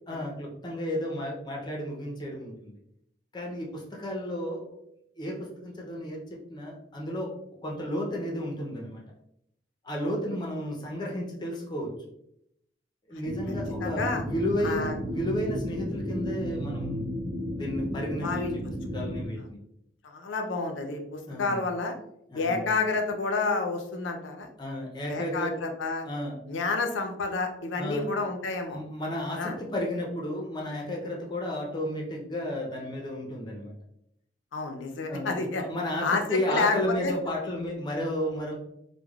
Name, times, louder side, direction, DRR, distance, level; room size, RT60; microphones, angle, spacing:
voice 1, 0.1-2.7 3.3-4.7 5.2-7.3 7.6-9.0 9.8-11.9 13.1-17.1 17.5-18.6 18.9-19.4 21.3-21.6 22.3-22.6 24.6-25.6 26.0-26.4 27.8-28.1 28.7-33.7 35.1-38.5, left 1 dB, 25° left, -1 dB, 0.5 m, -32 dB
sound 1, 13.2-19.2, equal, 65° right, 1.0 m, -33 dB
voice 2, 13.8-14.2 14.6-14.9 18.2-18.5 20.0-21.9 22.3-24.5 25.1-26.1 26.5-28.8 29.4-29.6 34.5-35.6 36.0-36.7 37.0-37.1, left 4 dB, 85° left, 4 dB, 0.5 m, -29 dB
3.2 x 2.1 x 2.3 m, 0.76 s
head